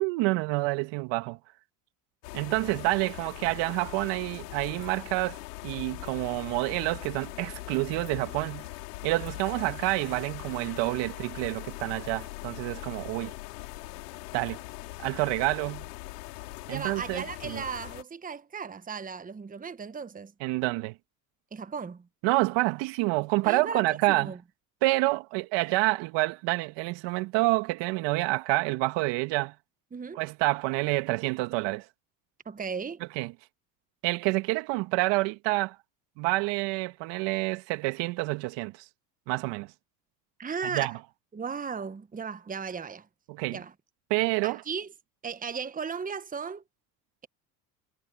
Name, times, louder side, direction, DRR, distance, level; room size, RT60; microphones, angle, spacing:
voice 1, 0.0-1.4 2.3-8.7 9.0-13.3 14.3-14.6 15.0-15.9 16.7-17.6 20.4-20.9 22.2-24.3 24.8-29.5 30.1-31.9 33.1-33.3 34.0-35.8 36.2-38.8 39.3-39.7 40.7-40.9 43.3-43.6 44.1-44.6, right 22 dB, 65° right, 1.6 m, -28 dB
sound 1, 2.2-18.0, left 20 dB, 85° left, 5.3 m, -41 dB
voice 2, 16.7-20.3 21.5-22.1 23.4-24.4 29.9-30.2 32.4-33.0 40.4-41.0 41.3-43.1 43.5-43.7 44.4-44.9 45.2-46.6, right 6 dB, 20° right, 1.1 m, -36 dB
hypercardioid pair, 80°, 46 cm